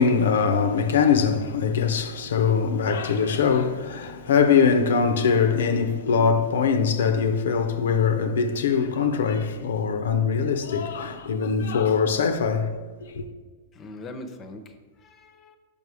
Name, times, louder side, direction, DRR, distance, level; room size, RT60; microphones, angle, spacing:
voice 1, 0.0-12.7 13.1-13.3, left 6 dB, 80° left, 0.5 m, -22 dB
voice 2, 13.7-15.6, left 1 dB, 25° left, 0.6 m, -41 dB
5.4 x 5.3 x 4.7 m
hypercardioid pair, 125°, 0 cm